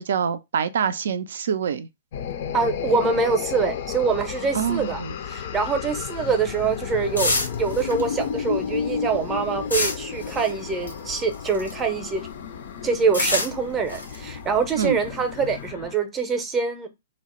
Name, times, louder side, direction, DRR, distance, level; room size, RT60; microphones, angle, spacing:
voice 1, 0.0-1.9 4.5-5.2 14.8-15.0, right 7 dB, 65° right, 0.3 m, -25 dB
sound 1, 2.1-15.9, left 7 dB, 55° left, 0.4 m, -32 dB
voice 2, 2.5-5.0 5.3-7.3 7.6-12.3 12.8-16.9, right 5 dB, 20° right, 0.6 m, -24 dB
sound 2, 5.9-12.0 12.3-15.7, left 2 dB, 90° left, 0.8 m, -30 dB
2.7 x 2.0 x 3.0 m
figure-of-eight pair, 120°, 0 cm